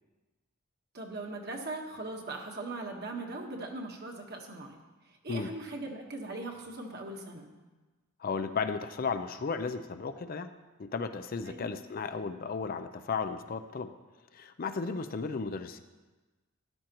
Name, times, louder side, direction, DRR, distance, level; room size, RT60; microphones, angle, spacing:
voice 1, 0.9-4.8 5.2-7.5 11.5-11.7, right 2 dB, 50° right, 1 dB, 1.4 m, -40 dB
voice 2, 8.2-10.5 10.8-13.9 14.3-15.8, left 5 dB, 40° left, 9 dB, 0.4 m, -34 dB
13.0 x 11.5 x 3.0 m, 1.2 s
head